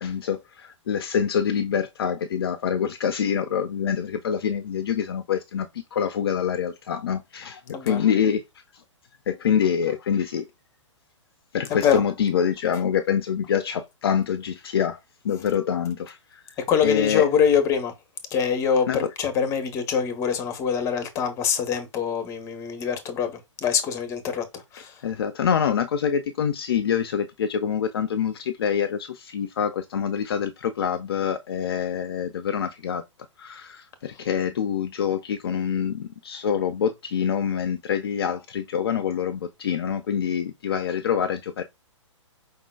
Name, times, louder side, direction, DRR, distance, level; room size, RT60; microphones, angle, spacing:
voice 1, 0.0-8.4 9.3-10.5 11.5-15.0 15.2-16.4 16.8-17.3 18.9-19.1 25.0-33.0 33.4-41.6, left 8 dB, 50° left, 0.6 m, -26 dB
voice 2, 16.6-17.9 18.3-24.9, left 7 dB, 20° left, 0.9 m, -24 dB
5.0 x 3.7 x 2.3 m
figure-of-eight pair, 120°, 16 cm